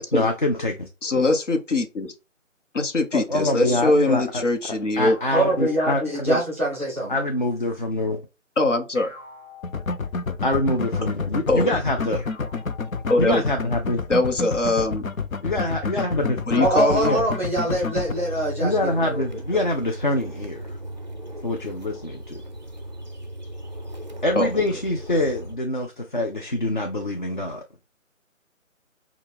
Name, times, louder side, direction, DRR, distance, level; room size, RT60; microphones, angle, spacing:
voice 1, 0.1-1.2 3.1-4.4 5.0-6.4 7.1-8.2 10.4-12.2 13.2-14.0 15.4-16.7 17.1-17.2 18.6-20.8 21.4-22.4 24.2-27.6, left 1 dB, 40° left, 0.5 m, -25 dB
voice 2, 1.0-2.1 2.7-5.2 8.6-9.1 11.5-11.7 13.1-13.4 14.1-15.0 16.5-17.1 24.3-24.5, left 2 dB, 65° left, 1.1 m, -22 dB
sound 1, 4.9-6.6 8.9-10.5 12.1-13.6, left 4 dB, 20° left, 2.4 m, -47 dB
voice 3, 5.3-7.1 16.6-19.2, right 1 dB, 10° right, 0.7 m, -24 dB
sound 2, 9.6-18.1, left 4 dB, 90° left, 0.7 m, -28 dB
sound 3, 18.1-25.6, right 1 dB, 35° right, 0.4 m, -37 dB
6.3 x 2.4 x 3.4 m
figure-of-eight pair, 160°, 40 cm